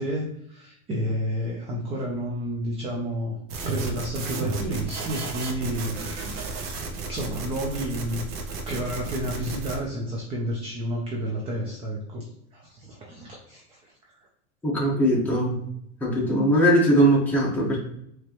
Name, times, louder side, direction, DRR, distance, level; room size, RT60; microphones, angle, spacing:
voice 1, 0.0-3.4 3.7-5.9 6.3-6.5 7.1-8.2 8.7-14.2, equal, 15° right, -1 dB, 0.4 m, -31 dB
sound 1, 3.5-9.8, right 3 dB, 60° right, 1.0 m, -33 dB
voice 2, 14.6-15.6 16.0-17.8, right 1 dB, 5° left, -5 dB, 1.3 m, -20 dB
4.5 x 3.1 x 3.0 m, 0.74 s
supercardioid pair, 135°, 43 cm